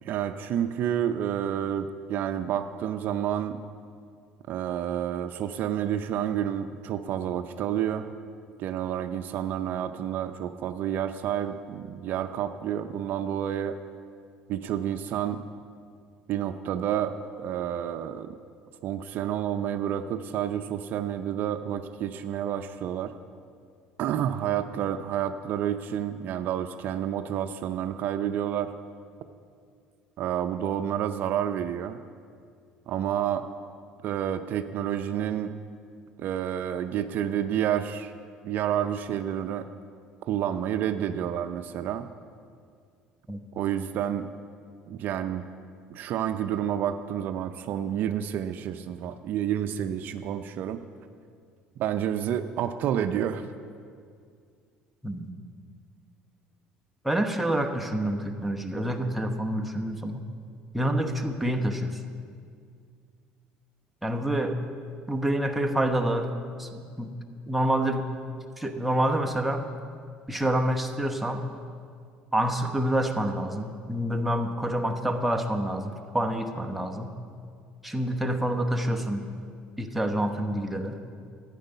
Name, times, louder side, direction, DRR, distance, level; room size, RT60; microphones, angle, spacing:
voice 1, 0.0-3.6 4.5-8.1 8.6-13.8 14.5-15.4 16.3-18.3 18.8-23.1 24.0-28.7 30.2-32.0 32.9-33.5 34.0-35.6 36.2-38.1 38.4-39.7 40.3-42.1 43.5-44.3 44.9-45.4 45.9-50.8 51.8-53.5, right 10 dB, 60° right, 9 dB, 0.5 m, -29 dB
voice 2, 57.0-60.2 60.7-62.0 64.0-64.6 65.1-66.3 66.6-67.1 67.5-68.1 68.6-69.7 70.3-71.4 72.3-77.1 77.8-79.3 79.8-81.0, right 1 dB, 5° right, 2 dB, 1.0 m, -27 dB
11.5 x 9.0 x 5.6 m, 2.2 s
supercardioid pair, 100°, 4 cm